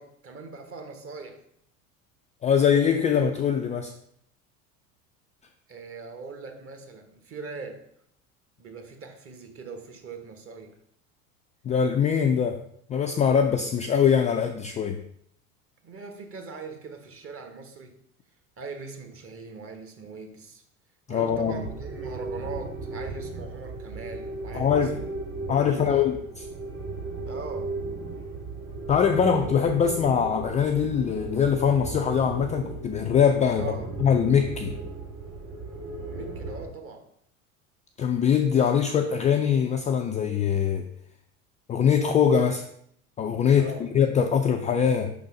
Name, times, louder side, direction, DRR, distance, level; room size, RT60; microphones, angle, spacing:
voice 1, 0.0-1.4 5.7-7.8 8.6-10.7 15.8-18.0 18.6-20.6 21.1-25.1 25.4-26.0 27.2-27.7 33.6-33.9 36.1-37.1 43.6-43.8, right 4 dB, 30° right, 4 dB, 1.3 m, -41 dB
voice 2, 2.4-3.9 11.6-12.6 12.9-15.0 21.1-21.6 24.5-25.0 25.5-26.1 28.9-33.6 34.0-34.8 38.0-40.9 41.7-42.6 43.2-45.1, left 7 dB, 20° left, 4 dB, 0.3 m, -22 dB
sound 1, 21.3-36.7, right 3 dB, 65° right, 2.4 m, -36 dB
5.0 x 4.0 x 4.8 m, 0.68 s
hypercardioid pair, 80°, 41 cm